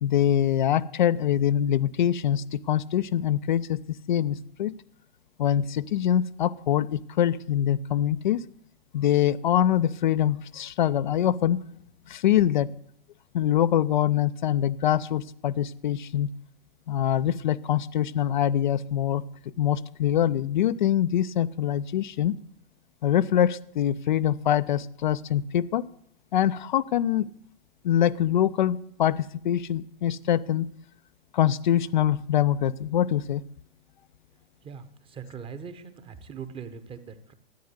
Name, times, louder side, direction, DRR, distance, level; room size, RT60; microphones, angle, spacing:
voice 1, 0.0-4.7 5.4-8.4 8.9-11.6 12.1-12.7 13.3-16.3 16.9-19.2 19.6-22.4 23.0-25.8 26.3-27.3 27.8-30.7 31.3-33.4, left 10 dB, 55° left, 12 dB, 0.6 m, -24 dB
voice 2, 34.6-37.3, right 6 dB, 20° right, 12 dB, 1.1 m, -41 dB
13.5 x 9.3 x 8.1 m, 0.65 s
figure-of-eight pair, 105°, 30 cm